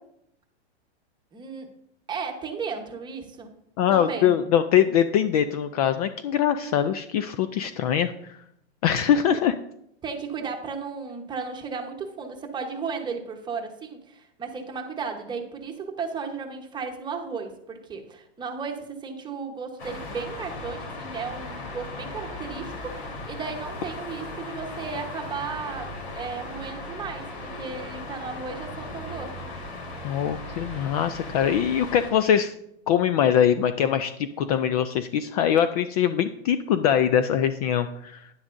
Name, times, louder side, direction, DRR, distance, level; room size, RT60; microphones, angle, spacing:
voice 1, 1.3-1.7 2.1-3.5 3.9-4.4 9.3-9.4 10.0-29.5, right 5 dB, 15° right, 3 dB, 1.1 m, -35 dB
voice 2, 3.8-8.4 8.8-9.5 30.0-32.5 32.9-38.3, left 9 dB, 35° left, 11 dB, 0.4 m, -23 dB
sound 1, 19.8-32.1, left 2 dB, 70° left, 3.6 m, -37 dB
11.0 x 10.0 x 2.6 m, 0.76 s
hypercardioid pair, 140°, 33 cm